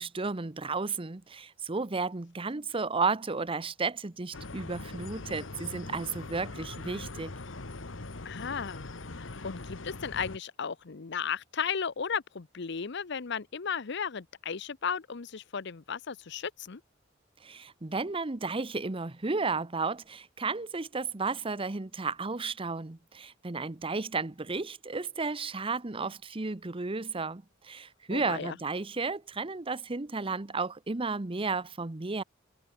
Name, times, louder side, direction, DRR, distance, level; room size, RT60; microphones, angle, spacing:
voice 1, 0.0-7.3 17.4-32.2, right 4 dB, 30° right, 0.8 m, -33 dB
sound 1, 4.3-10.4, left 2 dB, 75° left, 1.5 m, -42 dB
voice 2, 8.2-8.9 9.2-16.8 28.1-28.5, left 6 dB, 60° left, 0.8 m, -35 dB
head